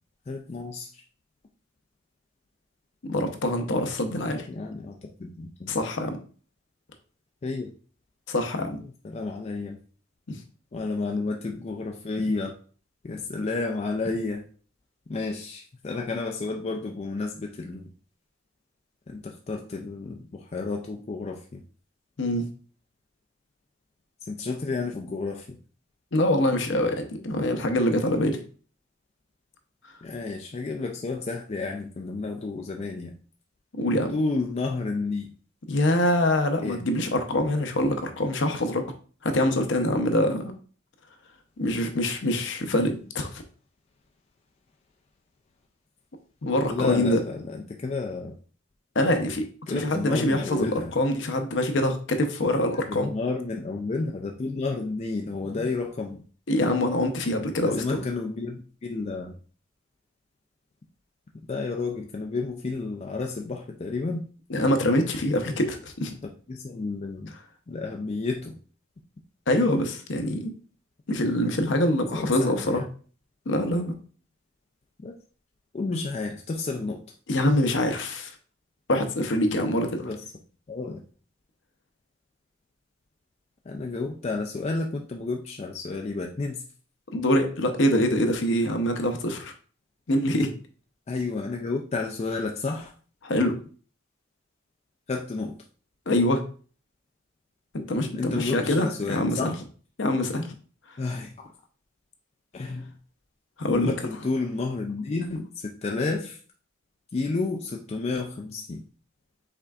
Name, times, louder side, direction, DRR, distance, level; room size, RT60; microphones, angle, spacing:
voice 1, 0.3-1.0 4.5-5.7 7.4-7.7 9.0-9.8 10.7-12.6 13.0-14.5 15.1-17.9 19.1-21.6 24.3-25.6 30.0-33.1 34.1-35.3 36.6-36.8 46.7-48.3 49.7-50.9 52.9-56.2 57.6-59.3 61.5-64.3 66.5-67.3 67.7-68.6 72.1-72.8 75.0-75.2 75.7-77.0 80.0-80.2 80.7-81.0 83.7-86.6 91.1-92.9 95.1-95.5 98.2-99.6 101.0-101.5 102.5-102.9 103.7-106.4 107.1-108.8, left 3 dB, 30° left, 2 dB, 0.4 m, -31 dB
voice 2, 3.0-4.5 5.7-6.2 8.3-8.8 10.3-10.4 22.2-22.5 26.1-28.4 33.8-34.1 35.7-38.8 39.2-40.6 41.6-43.4 46.4-47.2 48.9-53.1 56.5-58.0 64.5-66.1 69.5-70.5 71.1-72.8 73.5-73.9 77.3-78.3 78.9-80.1 87.1-89.5 90.1-90.5 93.2-93.6 96.1-96.5 97.7-99.5 100.0-100.5 100.9-101.0 103.6-103.9, left 1 dB, 60° left, 6 dB, 0.7 m, -24 dB
5.6 x 3.7 x 2.4 m, 0.41 s
head